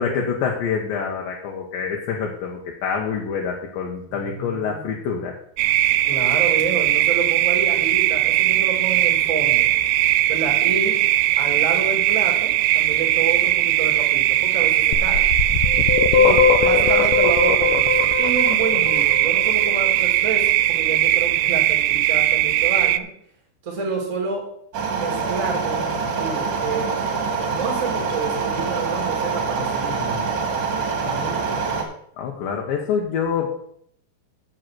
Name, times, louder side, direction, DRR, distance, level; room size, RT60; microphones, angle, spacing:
voice 1, 0.0-5.3 16.3-17.0 32.2-33.5, left 6 dB, 70° left, -1 dB, 2.5 m, -26 dB
voice 2, 4.1-4.9 6.0-9.7 10.3-11.0 11.4-15.2 16.1-23.1 23.6-24.5 24.9-26.9 27.5-30.4 31.0-31.7, right 4 dB, 25° right, 0 dB, 1.9 m, -29 dB
sound 1, 5.6-23.0, right 15 dB, 90° right, 2.7 m, -19 dB
sound 2, 14.9-19.8, left 7 dB, 85° left, 1.8 m, -20 dB
sound 3, 24.7-31.8, right 5 dB, 60° right, 2.6 m, -25 dB
7.7 x 7.6 x 6.1 m, 0.67 s
omnidirectional pair, 4.8 m